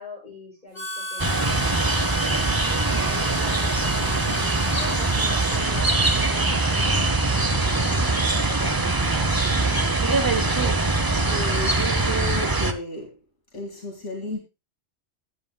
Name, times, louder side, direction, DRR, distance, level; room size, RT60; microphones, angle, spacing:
voice 1, 0.0-1.7 2.9-9.3 10.4-10.9, left 2 dB, 40° left, 5.9 m, -43 dB
Harmonica, 0.7-8.0, left 1 dB, 70° right, 6.2 m, -36 dB
sound 1, 1.2-12.7, right 2 dB, 20° right, 0.8 m, -22 dB
voice 2, 11.3-13.2 13.5-14.4, left 1 dB, 90° left, 2.7 m, -32 dB
16.5 x 8.3 x 2.2 m
omnidirectional pair, 1.2 m